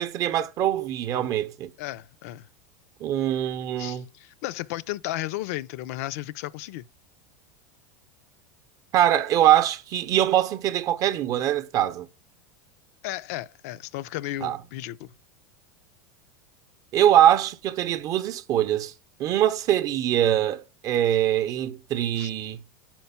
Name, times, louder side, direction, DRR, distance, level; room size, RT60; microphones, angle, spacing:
voice 1, 0.0-1.7 3.0-4.0 8.9-12.1 14.4-14.6 16.9-18.9 19.2-22.6, right 11 dB, 40° right, 0.7 m, -23 dB
voice 2, 1.8-2.5 3.8-6.8 13.0-15.1 22.2-22.3, left 15 dB, 65° left, 0.4 m, -34 dB
5.3 x 4.5 x 5.7 m
hypercardioid pair, 105°, 9 cm